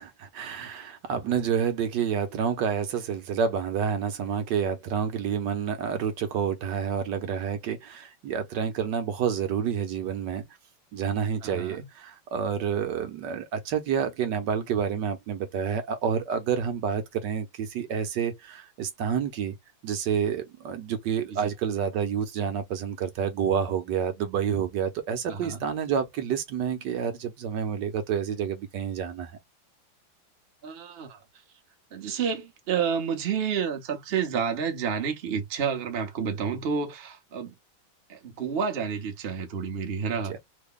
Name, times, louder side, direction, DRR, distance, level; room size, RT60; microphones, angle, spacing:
voice 1, 0.0-10.4 10.9-19.5 19.8-29.3 40.3-40.4, right 7 dB, 70° right, 1.3 m, -29 dB
voice 2, 11.4-11.9 21.3-21.5 25.3-25.6 30.6-31.2 31.9-37.5 38.1-40.3, right 6 dB, 55° right, 0.7 m, -30 dB
3.3 x 2.2 x 3.6 m
omnidirectional pair, 2.2 m